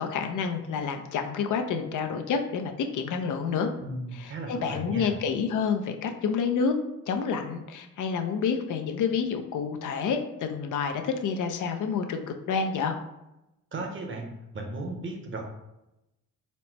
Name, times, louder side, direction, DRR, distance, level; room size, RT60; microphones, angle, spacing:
voice 1, 0.0-3.7 4.1-6.8 7.1-12.9, left 6 dB, 70° left, 5 dB, 0.5 m, -29 dB
voice 2, 3.8-5.1 13.7-14.3 14.5-15.4, right 2 dB, 40° right, 3 dB, 0.8 m, -35 dB
4.2 x 2.0 x 4.4 m, 0.91 s
cardioid pair, 105°, 32 cm